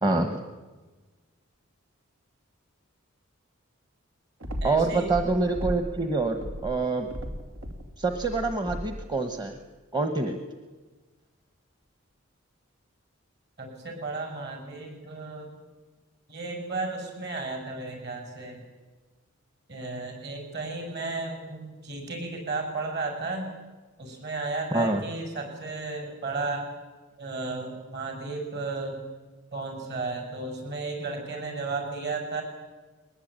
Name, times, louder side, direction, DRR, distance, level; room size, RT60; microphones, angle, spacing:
voice 1, 0.0-0.4 4.6-7.1 8.0-9.5 9.9-10.4 24.7-25.0, right 3 dB, 20° right, 6 dB, 1.2 m, -26 dB
sound 1, 4.4-6.0 6.3-9.1, equal, 80° right, 3.0 m, -36 dB
voice 2, 4.6-5.2 13.6-15.5 16.3-18.6 19.7-23.5 24.0-26.7 27.2-29.0 29.5-32.4, right 3 dB, 50° right, 4 dB, 7.0 m, -34 dB
21.5 x 20.5 x 8.9 m, 1.3 s
head